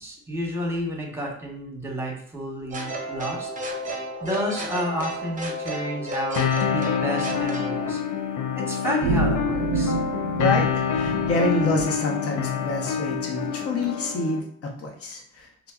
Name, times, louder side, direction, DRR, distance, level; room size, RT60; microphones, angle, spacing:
voice 1, 0.0-3.5 3.8-8.0 8.5-10.0, equal, 10° right, 0 dB, 1.0 m, -31 dB
sound 1, 2.7-7.9, equal, 25° right, 0.7 m, -32 dB
sound 2, 6.4-14.4, left 7 dB, 75° left, 0.5 m, -27 dB
sound 3, 9.0-11.9, right 3 dB, 85° right, 0.5 m, -27 dB
voice 2, 10.4-15.5, left 2 dB, 50° left, 1 dB, 0.8 m, -27 dB
3.0 x 2.2 x 3.6 m, 0.65 s
cardioid pair, 90°, 30 cm